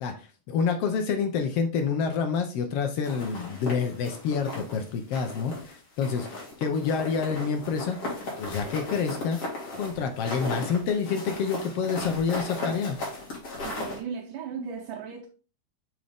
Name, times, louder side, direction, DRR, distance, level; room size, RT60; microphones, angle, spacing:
voice 1, 0.0-8.0 8.4-9.4 9.8-13.0 14.6-14.7, left 6 dB, 75° left, 1.4 m, -28 dB
sound 1, 3.0-4.8 5.1-5.7 6.0-14.0, left 2 dB, 50° left, 3.1 m, -36 dB
voice 2, 13.6-15.3, right 7 dB, 85° right, 2.6 m, -36 dB
6.3 x 4.4 x 3.5 m
omnidirectional pair, 3.7 m